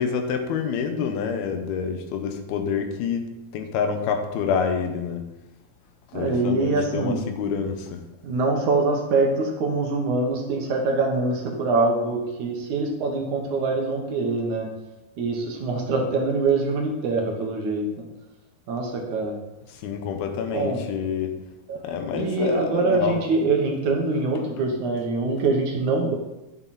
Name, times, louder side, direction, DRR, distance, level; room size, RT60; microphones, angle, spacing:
voice 1, 0.0-5.2 6.1-8.0 19.7-21.3 21.8-23.2, left 6 dB, 90° left, 6 dB, 3.0 m, -27 dB
voice 2, 6.1-7.2 8.2-14.7 15.2-17.9 18.7-19.3 20.5-20.8 21.7-26.2, right 3 dB, 60° right, 1 dB, 2.4 m, -24 dB
11.0 x 7.4 x 4.2 m, 0.97 s
omnidirectional pair, 4.3 m